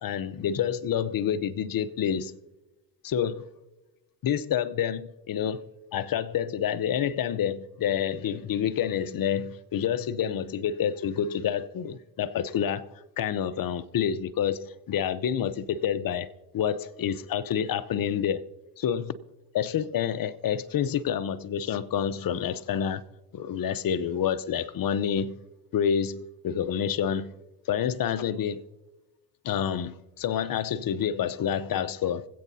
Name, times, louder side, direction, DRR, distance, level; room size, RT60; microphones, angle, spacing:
voice 1, 0.0-2.4 3.0-3.5 4.2-18.5 18.8-19.2 19.5-23.0 23.3-25.4 25.7-27.3 27.7-28.6 29.4-32.3, left 8 dB, 45° left, 0.8 m, -28 dB
25.5 x 8.5 x 2.8 m
supercardioid pair, 65°, 46 cm